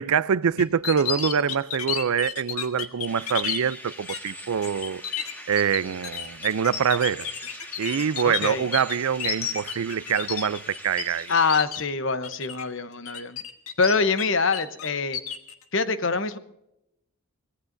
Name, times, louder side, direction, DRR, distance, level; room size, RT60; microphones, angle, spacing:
voice 1, 0.0-5.0 5.5-7.3 7.8-11.3, right 7 dB, 85° right, 0.4 m, -25 dB
sound 1, 0.6-3.6 4.1-4.3 4.6-11.0 11.3-11.8 12.2-12.6 13.0-14.2 14.5-15.5, left 8 dB, 90° left, 1.6 m, -31 dB
sound 2, 3.1-11.6, equal, 10° left, 1.7 m, -42 dB
voice 2, 8.2-8.7 11.3-13.4 13.8-15.2 15.7-16.4, left 4 dB, 60° left, 0.9 m, -24 dB
25.0 x 18.0 x 2.6 m
head